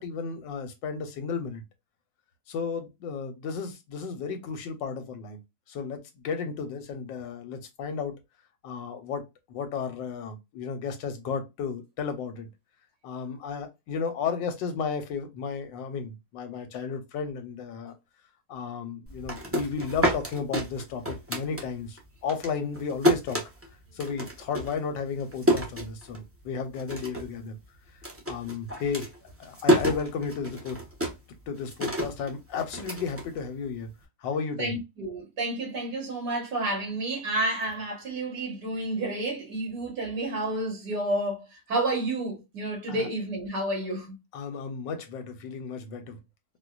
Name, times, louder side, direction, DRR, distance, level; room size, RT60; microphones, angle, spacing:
voice 1, 0.0-1.6 2.5-5.4 5.7-8.1 8.6-12.5 13.0-17.9 18.5-23.4 23.9-27.6 28.3-29.1 29.4-30.8 31.5-33.9 34.2-34.7 42.9-43.1 44.3-46.2, left 5 dB, 85° left, 1.5 m, -33 dB
sound 1, 19.1-22.0 22.3-26.4 26.7-27.4 27.6-33.9, equal, 20° right, 0.3 m, -29 dB
voice 2, 34.6-44.1, right 2 dB, 65° right, 2.1 m, -30 dB
4.4 x 2.2 x 2.4 m
omnidirectional pair, 1.9 m